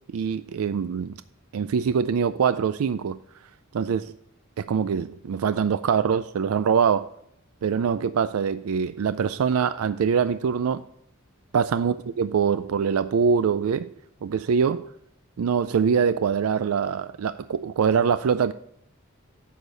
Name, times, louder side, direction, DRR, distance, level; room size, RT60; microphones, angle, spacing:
voice 1, 0.1-1.1 1.5-3.2 3.7-4.1 4.6-7.1 7.6-10.8 11.5-13.9 14.2-14.9 15.4-18.5, right 6 dB, 85° right, 0.4 m, -23 dB
10.0 x 6.5 x 3.9 m
head